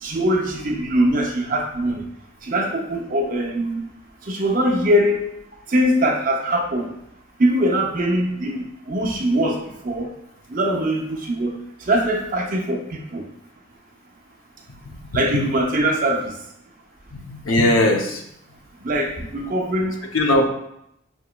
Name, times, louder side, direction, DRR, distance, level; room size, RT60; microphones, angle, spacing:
voice 1, 0.0-2.0 2.5-3.9 4.3-5.2 5.7-6.9 7.4-10.1 10.5-11.5 11.9-13.2 15.1-16.3 18.8-20.0, right 1 dB, 40° right, 1 dB, 0.6 m, -22 dB
voice 2, 14.9-15.4 17.1-18.2 20.1-20.5, left 1 dB, 85° left, 2 dB, 0.7 m, -20 dB
6.1 x 2.9 x 2.3 m, 0.79 s
head